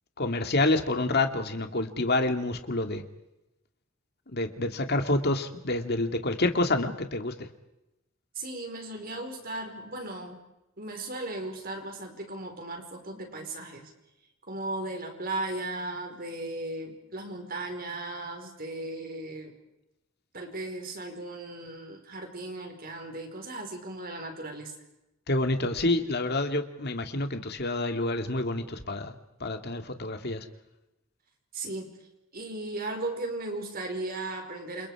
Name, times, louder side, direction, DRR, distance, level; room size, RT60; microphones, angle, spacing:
voice 1, 0.2-3.0 4.3-7.5 25.3-29.1 29.4-30.4, left 2 dB, 50° left, 6 dB, 2.4 m, -28 dB
voice 2, 8.3-10.4 10.8-13.9 14.5-19.5 20.3-24.7 31.5-31.9 32.3-34.9, right 2 dB, 45° right, 4 dB, 5.0 m, -36 dB
29.0 x 27.5 x 5.0 m, 0.91 s
head